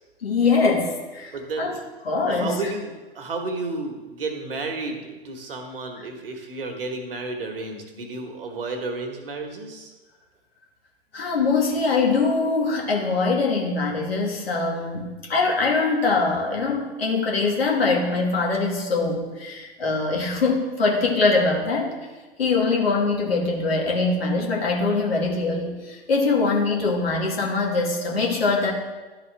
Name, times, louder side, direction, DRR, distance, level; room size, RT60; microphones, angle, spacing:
voice 1, 0.2-1.8 2.0-2.6 11.1-21.9 22.4-28.7, left 3 dB, 70° left, -1 dB, 1.8 m, -23 dB
voice 2, 1.3-1.7 2.3-9.9, right 3 dB, 60° right, 4 dB, 1.3 m, -32 dB
11.5 x 4.1 x 3.3 m, 1.2 s
figure-of-eight pair, 110°, 32 cm